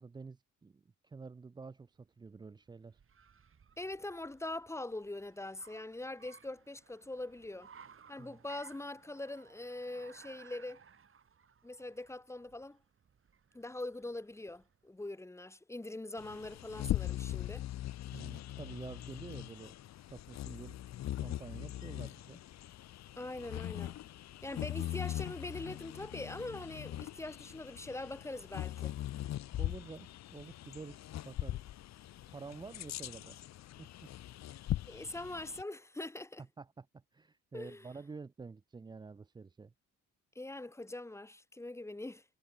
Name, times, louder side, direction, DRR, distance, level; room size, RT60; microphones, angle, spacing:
voice 1, 0.0-3.0 8.2-8.4 18.1-19.7 20.1-20.8 21.2-22.4 29.6-31.7 32.3-33.4 33.8-34.1 36.6-39.7, right 4 dB, 15° right, 0.4 m, -49 dB
Car, 1.9-14.9, right 6 dB, 45° right, 5.0 m, -61 dB
voice 2, 3.8-7.7 8.1-10.8 11.6-12.8 13.5-17.6 23.2-24.0 24.4-28.9 34.9-36.4 37.5-37.9 40.3-42.2, left 2 dB, 10° left, 1.0 m, -43 dB
Bird vocalization bird call bird song, 16.2-35.6, left 13 dB, 60° left, 0.7 m, -41 dB
cardioid pair, 90°, 30 cm